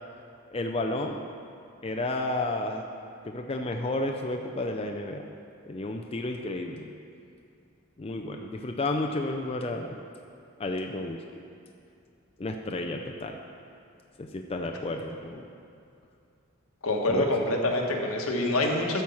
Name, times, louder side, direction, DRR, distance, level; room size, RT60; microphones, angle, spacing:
voice 1, 0.5-1.2 1.8-2.9 3.2-5.3 5.6-6.9 8.0-10.0 10.6-11.2 12.4-13.4 14.2-15.5 17.1-17.3, left 2 dB, 25° left, 3 dB, 0.4 m, -32 dB
voice 2, 16.8-19.0, left 1 dB, 85° left, 0 dB, 1.4 m, -26 dB
12.0 x 4.6 x 7.1 m, 2.5 s
head